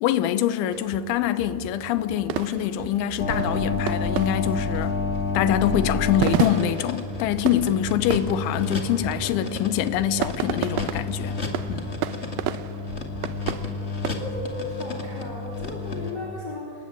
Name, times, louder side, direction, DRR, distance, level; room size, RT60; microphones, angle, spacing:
voice 1, 0.0-4.9 5.3-11.4 11.7-11.9, left 10 dB, 90° left, 3.4 m, -24 dB
sound 1, 0.7-14.1, right 12 dB, 90° right, 2.0 m, -33 dB
sound 2, 3.2-16.1, left 4 dB, 60° left, 0.6 m, -30 dB
voice 2, 14.0-16.8, left 2 dB, 25° left, 4.0 m, -35 dB
26.5 x 20.5 x 9.0 m
omnidirectional pair, 5.2 m